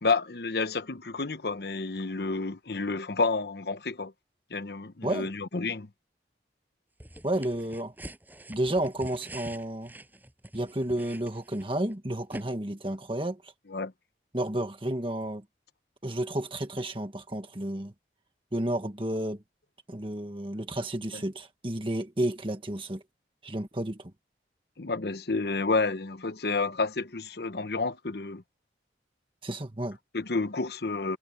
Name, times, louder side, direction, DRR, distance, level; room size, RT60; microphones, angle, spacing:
voice 1, 0.0-4.1 4.5-5.9 13.7-13.9 21.1-21.2 24.8-28.4 30.1-31.2, left 3 dB, 60° left, 1.0 m, -30 dB
sound 1, 7.0-11.9 12.3-12.4, right 1 dB, 10° right, 7.4 m, -45 dB
voice 2, 7.2-7.9 8.5-9.9 10.5-13.5 14.3-15.4 16.0-17.9 18.5-19.4 19.9-23.0 23.4-24.1 29.4-30.0, right 1 dB, 30° right, 1.6 m, -31 dB
head